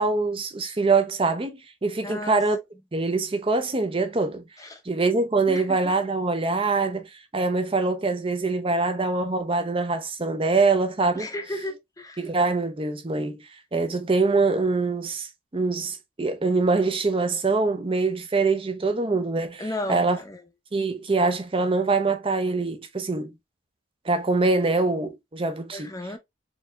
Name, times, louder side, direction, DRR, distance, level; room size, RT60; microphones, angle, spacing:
voice 1, 0.0-2.6 2.9-4.4 4.9-11.3 12.2-13.4 13.7-15.3 15.5-20.2 20.7-23.3 24.1-25.9, right 3 dB, 25° right, 0.5 m, -24 dB
voice 2, 2.0-2.4 4.6-4.8 5.5-5.9 11.1-12.2 19.6-20.4 25.7-26.2, left 1 dB, 15° left, 0.6 m, -34 dB
4.4 x 2.7 x 2.2 m
head